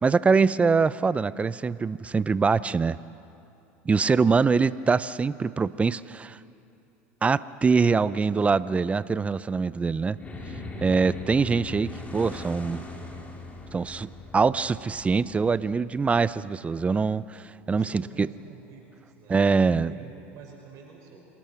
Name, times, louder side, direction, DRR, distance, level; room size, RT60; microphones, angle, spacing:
voice 1, 0.0-3.0 3.9-6.4 7.2-10.2 10.8-12.8 13.7-18.3 19.3-19.9, right 5 dB, 20° right, 17 dB, 0.5 m, -23 dB
voice 2, 7.8-9.0 17.7-21.3, right 6 dB, 55° right, 0 dB, 5.4 m, -49 dB
sound 1, 10.2-16.7, left 2 dB, 20° left, 3.1 m, -40 dB
27.0 x 19.0 x 5.8 m, 2.7 s
hypercardioid pair, 95°, 7 cm